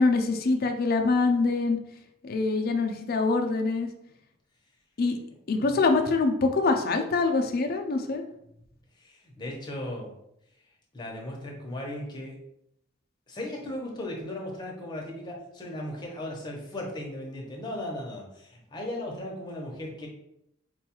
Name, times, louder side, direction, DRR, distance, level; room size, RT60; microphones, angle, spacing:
voice 1, 0.0-1.8 2.2-3.9 5.0-5.2 5.5-8.2, left 3 dB, 50° left, 4 dB, 0.4 m, -24 dB
voice 2, 9.0-10.1 10.9-12.3 13.3-20.1, left 1 dB, 20° left, -1 dB, 0.7 m, -37 dB
4.5 x 2.3 x 2.9 m, 0.78 s
head